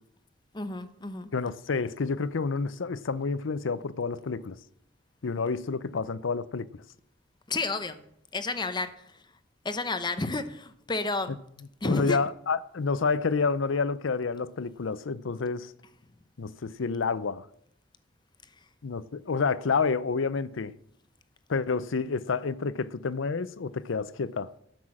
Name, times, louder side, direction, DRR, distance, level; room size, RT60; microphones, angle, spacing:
voice 1, 0.5-1.3 7.5-8.0 8.3-8.9 9.6-11.4 11.8-12.2, left 3 dB, 25° left, 0.8 m, -31 dB
voice 2, 1.3-4.6 5.2-6.7 11.3-11.4 11.8-15.7 16.4-17.5 18.8-20.7 21.5-24.5, left 4 dB, 90° left, 0.6 m, -29 dB
12.0 x 6.1 x 7.4 m
head